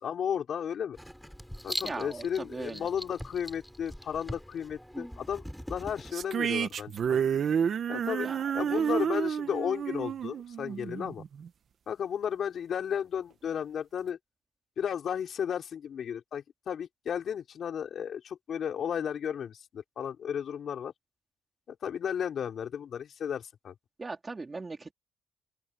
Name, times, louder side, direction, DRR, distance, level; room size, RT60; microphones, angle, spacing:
voice 1, 0.0-1.0 1.6-7.2 7.9-8.3 8.5-11.2 11.9-14.2 14.8-20.9 21.7-23.7, left 8 dB, 60° left, 5.1 m, -34 dB
Writing, 0.9-6.1, equal, ahead, 4.7 m, -41 dB
voice 2, 1.8-2.9 8.2-8.4 8.7-8.8 24.0-24.9, right 3 dB, 25° right, 3.7 m, -39 dB
sound 1, 6.1-11.5, right 7 dB, 55° right, 1.5 m, -30 dB
open air
cardioid pair, 90°, 0 cm